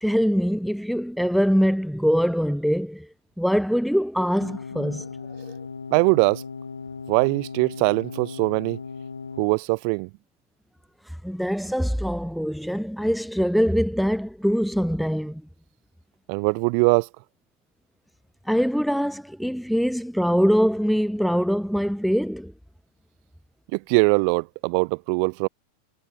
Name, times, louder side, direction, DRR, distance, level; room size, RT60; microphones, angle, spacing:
voice 1, 0.0-3.1 3.4-5.1 11.2-15.4 18.5-22.5, equal, ahead, 0.9 m, -23 dB
sound 1, 4.4-9.5, left 5 dB, 75° left, 1.9 m, -37 dB
voice 2, 5.9-6.4 7.1-8.8 9.4-10.1 16.3-17.1 23.7-25.5, right 40 dB or more, 45° right, 0.4 m, -21 dB
figure-of-eight pair, 90°, 0 cm